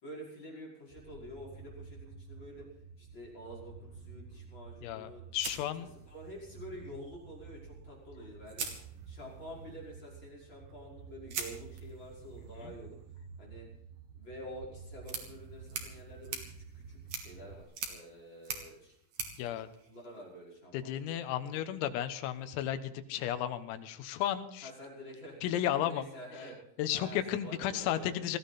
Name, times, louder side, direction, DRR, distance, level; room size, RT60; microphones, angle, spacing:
voice 1, 0.0-2.6 3.0-5.4 6.1-8.6 9.1-13.0 13.4-13.7 14.2-19.0 19.9-20.9 21.4-21.8 24.6-25.4 25.8-26.6 26.9-28.1, equal, 20° left, -4 dB, 5.8 m, -48 dB
sound 1, 0.9-17.6, right 5 dB, 70° right, 3.4 m, -51 dB
voice 2, 4.8-5.9 12.6-12.7 19.4-19.7 20.7-24.7 25.4-26.1 26.8-28.4, left 11 dB, 85° left, 10 dB, 3.8 m, -34 dB
sound 2, 5.4-6.5 7.9-8.0 8.5-9.5 11.3-20.5, right 5 dB, 50° right, 2.4 m, -44 dB
19.5 x 15.0 x 4.2 m, 0.72 s
omnidirectional pair, 6.0 m